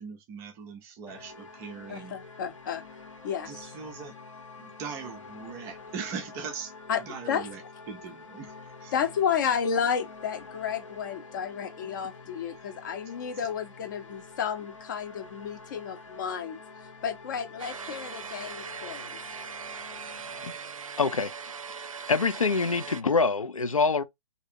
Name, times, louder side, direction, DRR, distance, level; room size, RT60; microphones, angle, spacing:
voice 1, 0.0-2.2 3.4-4.2 4.6-8.5 8.8-8.9 13.1-13.5, right 6 dB, 15° right, 0.4 m, -41 dB
sound 1, 1.1-20.5, left 4 dB, 65° left, 1.2 m, -47 dB
voice 2, 1.9-2.8 3.2-3.5 6.9-7.5 8.9-16.6 17.0-19.2, left 7 dB, 35° left, 0.8 m, -31 dB
sound 2, 17.6-23.0, right 6 dB, 75° right, 0.4 m, -40 dB
voice 3, 21.0-21.3 22.1-24.0, left 4 dB, 80° left, 0.6 m, -25 dB
3.2 x 2.7 x 2.6 m
figure-of-eight pair, 135°, 17 cm